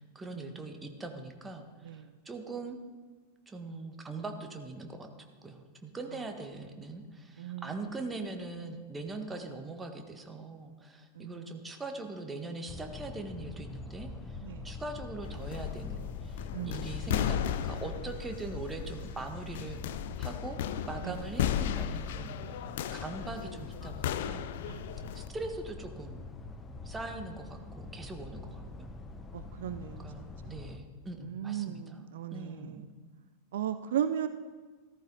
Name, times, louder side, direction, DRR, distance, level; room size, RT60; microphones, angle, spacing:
voice 1, 0.0-2.8 3.5-5.1 5.4-14.4 14.6-19.8 20.2-20.6 20.8-24.5 25.1-26.2 26.8-29.0 29.8-32.0 32.3-32.9, right 3 dB, 15° right, 5 dB, 1.5 m, -41 dB
voice 2, 7.4-7.8 11.2-11.6 14.4-14.7 16.5-17.0 21.0-21.2 24.6-25.0 29.3-30.0 30.4-30.5 31.2-32.9 33.5-34.3, right 10 dB, 60° right, 11 dB, 0.5 m, -36 dB
sound 1, 12.7-30.8, left 3 dB, 20° left, 1.0 m, -44 dB
sound 2, 15.2-25.3, left 10 dB, 55° left, 0.6 m, -36 dB
14.5 x 14.0 x 4.0 m, 1.4 s
figure-of-eight pair, 90°, 0 cm